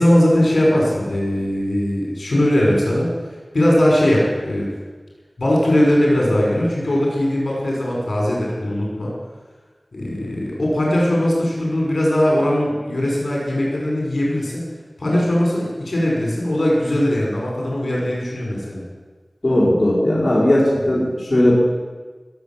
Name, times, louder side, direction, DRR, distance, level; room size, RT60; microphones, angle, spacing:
voice 1, 0.0-3.1 3.5-4.7 5.4-9.1 9.9-14.6 15.0-18.8 20.8-20.9, left 1 dB, 75° left, -3 dB, 5.8 m, -19 dB
voice 2, 19.4-21.0 21.3-21.5, left 1 dB, 45° left, -7 dB, 5.0 m, -16 dB
20.5 x 8.3 x 7.7 m, 1.4 s
wide cardioid pair, 45°, 0 cm